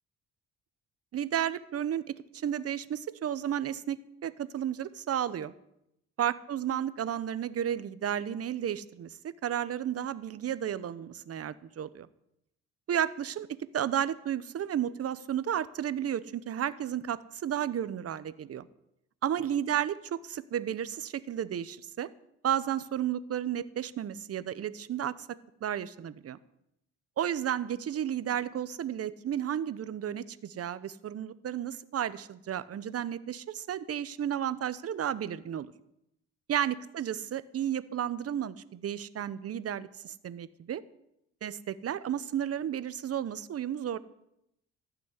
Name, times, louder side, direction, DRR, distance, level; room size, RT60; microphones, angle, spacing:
voice 1, 1.1-2.0 2.3-5.5 6.2-9.1 9.4-12.1 12.9-13.5 13.7-18.7 19.2-22.1 22.4-25.3 25.6-26.4 27.2-35.7 36.5-40.8 41.4-44.0, right 10 dB, 50° right, 16 dB, 0.9 m, -32 dB
15.0 x 6.1 x 9.7 m, 0.79 s
cardioid pair, 90°, 30 cm